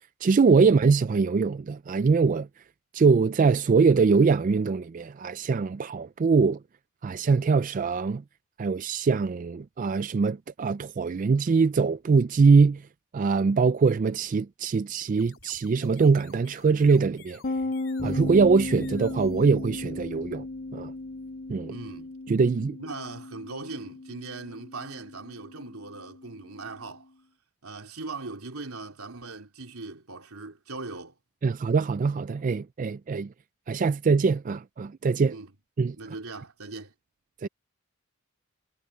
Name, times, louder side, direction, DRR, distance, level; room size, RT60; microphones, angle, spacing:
voice 1, 0.2-2.5 2.9-6.6 7.0-8.2 8.6-12.8 13.1-17.4 18.0-20.5 20.7-20.9 21.5-21.7 22.3-22.8 31.4-33.3 33.7-35.3 35.8-36.0 37.4-37.5, right 4 dB, 35° right, 0.3 m, -23 dB
sound 1, 15.0-20.5, left 5 dB, 65° left, 4.0 m, -54 dB
sound 2, 17.4-26.9, left 2 dB, 40° left, 0.5 m, -36 dB
sound 3, 18.0-21.7, equal, 5° left, 5.5 m, -44 dB
voice 2, 21.7-22.1 22.8-27.1 27.6-31.2 35.3-35.5 35.9-36.9, right 3 dB, 80° right, 3.3 m, -39 dB
head